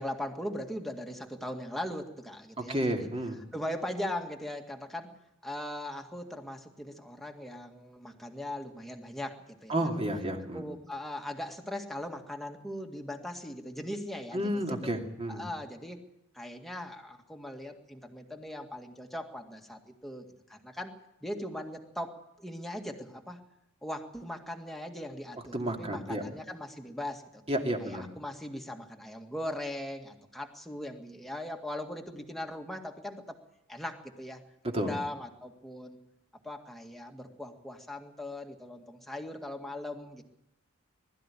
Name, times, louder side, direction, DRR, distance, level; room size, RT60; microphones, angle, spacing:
voice 1, 0.0-3.1 3.5-5.1 5.4-9.9 10.5-14.9 15.3-16.0 16.3-21.0 21.2-23.4 23.8-27.4 27.8-33.4 33.7-36.0 36.4-40.2, left 1 dB, ahead, 3 dB, 2.0 m, -39 dB
voice 2, 2.6-3.4 9.7-10.7 14.3-15.4 25.5-26.2 27.5-28.1 34.6-34.9, right 1 dB, 30° right, 3 dB, 2.6 m, -31 dB
21.0 x 13.0 x 10.0 m, 0.85 s
head